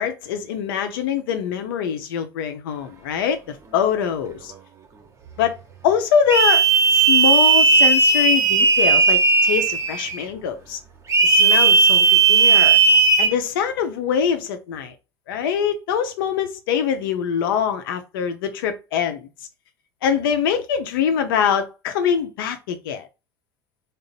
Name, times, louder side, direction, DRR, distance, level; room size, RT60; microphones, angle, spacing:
voice 1, 0.0-4.5 5.4-5.6 5.8-6.6 6.9-10.8 11.2-12.8 13.2-14.9 15.3-19.3 20.0-23.1, left 8 dB, 70° left, 0.7 m, -23 dB
sound 1, 6.3-10.2 11.1-13.3, right 4 dB, 25° right, 0.9 m, -15 dB
3.8 x 2.1 x 3.9 m
hypercardioid pair, 70°, 12 cm